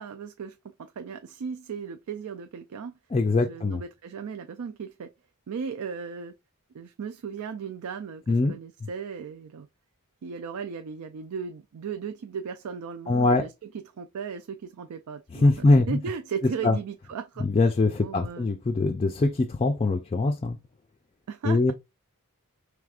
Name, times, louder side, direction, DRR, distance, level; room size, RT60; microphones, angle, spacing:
voice 1, 0.0-2.9 3.4-5.1 5.5-6.3 6.7-9.7 10.2-13.5 14.0-17.7 18.0-18.5 21.3-21.7, right 6 dB, 80° right, 0.4 m, -36 dB
voice 2, 3.1-3.8 8.3-8.5 13.1-13.4 15.3-16.0 16.6-16.8 17.4-20.6 21.4-21.7, left 2 dB, 25° left, 0.4 m, -22 dB
4.9 x 3.3 x 2.4 m
head